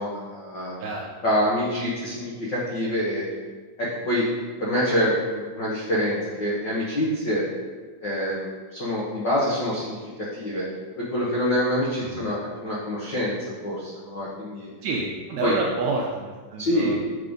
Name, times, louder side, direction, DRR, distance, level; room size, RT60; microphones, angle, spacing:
voice 1, 0.0-0.7 1.2-3.2 3.8-4.3 4.6-7.4 8.0-10.7 11.0-13.4 13.6-14.7 15.4-15.5 16.6-17.0, equal, 85° left, -7 dB, 0.9 m, -26 dB
voice 2, 14.8-17.0, right 3 dB, 80° right, -1 dB, 1.6 m, -28 dB
6.5 x 3.7 x 5.2 m, 1.4 s
omnidirectional pair, 3.7 m